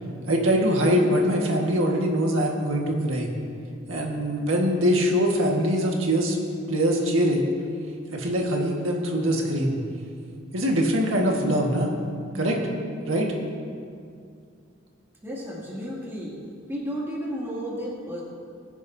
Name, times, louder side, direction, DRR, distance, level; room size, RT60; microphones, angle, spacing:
voice 1, 0.3-3.3 3.9-6.4 6.7-7.5 8.1-9.8 10.5-11.9 12.3-12.6 13.1-13.3, equal, 85° right, 0 dB, 1.6 m, -23 dB
voice 2, 15.2-16.3 16.7-18.2, equal, 10° right, -6 dB, 2.6 m, -32 dB
21.0 x 10.0 x 2.8 m, 2.3 s
head